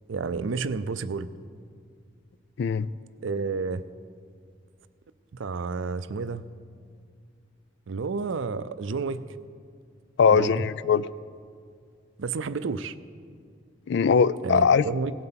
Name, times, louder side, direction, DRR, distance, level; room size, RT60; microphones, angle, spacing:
voice 1, 0.1-1.3 3.2-3.8 5.4-6.5 7.9-9.2 10.3-10.6 12.2-13.0 14.4-15.1, right 4 dB, 80° right, 14 dB, 0.5 m, -30 dB
voice 2, 10.2-11.1 13.9-14.9, left 6 dB, 65° left, 18 dB, 0.3 m, -21 dB
17.5 x 7.8 x 5.7 m, 2.2 s
head